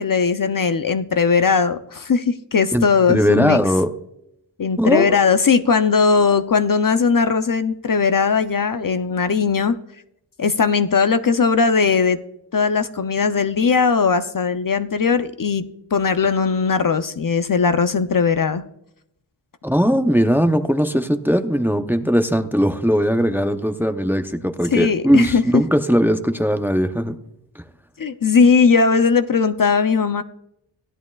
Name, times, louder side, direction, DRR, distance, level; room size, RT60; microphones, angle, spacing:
voice 1, 0.0-3.6 4.6-9.8 10.4-12.2 12.5-18.6 24.7-25.4 28.0-30.2, left 5 dB, 45° left, 10 dB, 0.5 m, -18 dB
voice 2, 2.7-3.9 4.8-5.2 19.6-27.2 27.6-27.7, equal, 5° right, 8 dB, 0.6 m, -19 dB
16.5 x 11.0 x 2.3 m, 0.80 s
wide cardioid pair, 85°, 47 cm